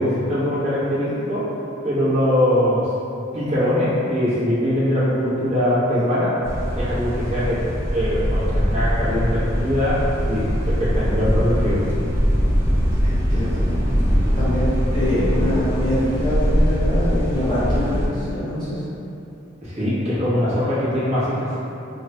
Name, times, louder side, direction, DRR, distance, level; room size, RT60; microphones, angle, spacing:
voice 1, 0.0-1.4 1.8-2.8 3.3-6.3 6.7-7.6 7.9-10.0 10.3-11.8 19.6-21.5, equal, 35° right, -11 dB, 1.0 m, -22 dB
sound 1, 6.4-18.1, equal, 15° right, 0.4 m, -22 dB
voice 2, 13.0-13.9 14.4-14.7 14.9-18.8, left 1 dB, 25° left, -12 dB, 0.9 m, -24 dB
3.6 x 2.2 x 2.8 m, 2.9 s
head